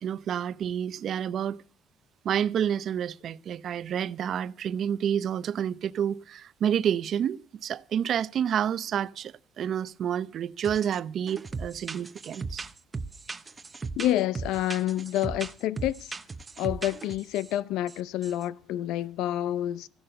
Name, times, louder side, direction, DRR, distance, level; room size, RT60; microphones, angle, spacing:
voice 1, 0.0-1.6 2.2-12.7, right 9 dB, 50° right, 0.7 m, -29 dB
sound 1, 10.6-11.0 11.3-17.5 17.9-18.0 18.2-18.4, right 4 dB, 20° right, 0.9 m, -37 dB
voice 2, 14.0-16.1 16.6-19.9, left 13 dB, 85° left, 0.7 m, -28 dB
15.5 x 11.5 x 6.6 m
cardioid pair, 140°, 0 cm